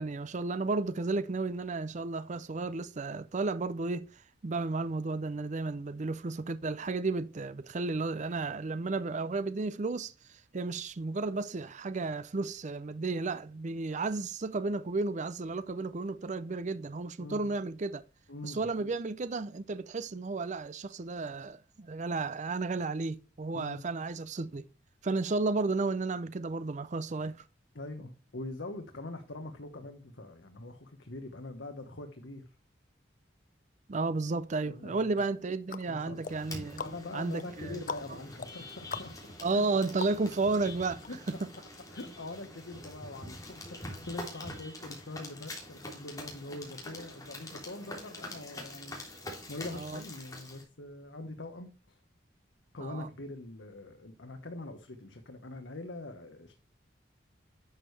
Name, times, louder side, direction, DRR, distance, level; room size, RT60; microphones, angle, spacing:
voice 1, 0.0-18.0 18.4-24.7 25.0-27.5 33.9-36.8 37.1-37.8 39.4-41.0 49.8-50.0 52.8-53.1, right 3 dB, 40° right, 0.5 m, -33 dB
voice 2, 17.2-17.5 18.3-18.9 23.5-23.8 27.7-32.4 34.6-35.2 35.9-36.2 36.8-39.2 39.5-39.6 41.1-41.2 41.9-52.0 52.7-56.5, left 2 dB, 75° left, 1.3 m, -43 dB
sound 1, 35.2-40.6 41.0-41.1, left 6 dB, 45° left, 0.6 m, -43 dB
sound 2, 36.2-50.6, left 1 dB, 20° left, 3.4 m, -45 dB
11.0 x 6.5 x 3.3 m
head